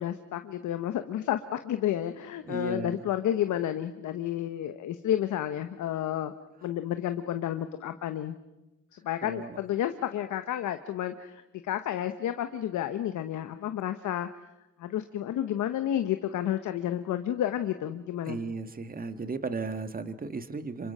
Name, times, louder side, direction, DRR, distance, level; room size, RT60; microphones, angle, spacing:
voice 1, 0.0-6.3 6.6-8.3 8.9-14.3 14.8-18.5, left 11 dB, 75° left, 9 dB, 1.1 m, -31 dB
voice 2, 2.4-3.1 9.2-9.6 18.3-20.9, right 4 dB, 30° right, 9 dB, 1.6 m, -35 dB
27.0 x 24.0 x 5.6 m, 1.0 s
cardioid pair, 90°, 30 cm